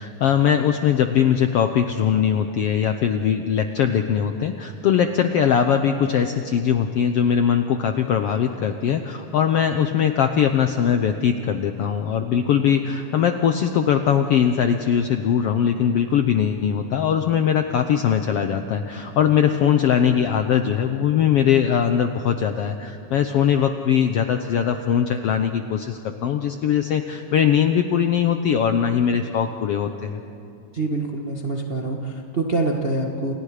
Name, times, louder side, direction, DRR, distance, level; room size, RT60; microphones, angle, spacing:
voice 1, 0.0-30.2, left 8 dB, 70° left, 6 dB, 1.4 m, -21 dB
voice 2, 30.7-33.3, right 2 dB, 35° right, 1 dB, 0.9 m, -25 dB
29.0 x 29.0 x 5.0 m, 2.7 s
omnidirectional pair, 3.7 m